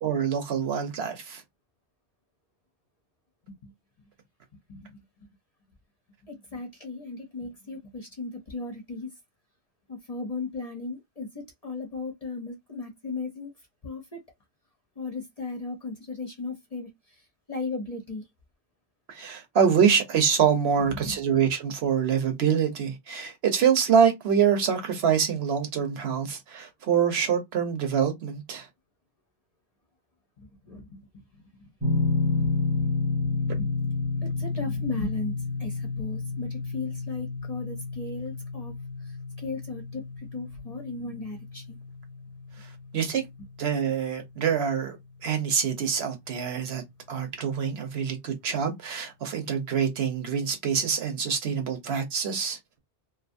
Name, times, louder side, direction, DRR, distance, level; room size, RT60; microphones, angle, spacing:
voice 1, 0.0-1.4 19.1-28.7 42.9-43.2 43.6-45.0 45.2-52.6, right 7 dB, 65° right, 1.0 m, -25 dB
voice 2, 4.7-5.0 6.2-9.1 9.9-13.5 13.8-14.2 15.0-17.2 17.5-18.2 20.8-21.2 30.4-31.1 31.6-31.7 32.1-32.4 33.3-38.7 39.0-41.8, left 3 dB, 40° left, 0.6 m, -37 dB
sound 1, 31.8-44.7, left 3 dB, 15° right, 0.7 m, -31 dB
2.5 x 2.4 x 2.5 m
omnidirectional pair, 1.2 m